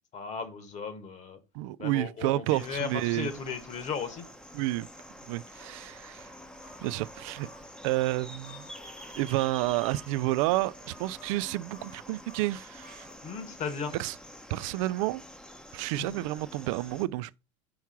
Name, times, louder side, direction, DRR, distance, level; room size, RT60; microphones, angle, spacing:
voice 1, 0.1-1.4 1.8-4.2 13.2-14.0 15.9-16.2, left 5 dB, 45° left, 1.5 m, -36 dB
voice 2, 1.5-3.3 4.5-4.9 5.3-6.3 6.8-7.5 7.8-8.7 9.2-13.1 14.0-14.1 14.5-15.2 15.7-17.3, right 17 dB, 70° right, 0.4 m, -30 dB
sound 1, 2.5-17.1, equal, 5° left, 0.8 m, -48 dB
sound 2, 6.6-13.2, left 1 dB, 65° left, 3.1 m, -56 dB
4.7 x 4.6 x 5.8 m
supercardioid pair, 100°, 17 cm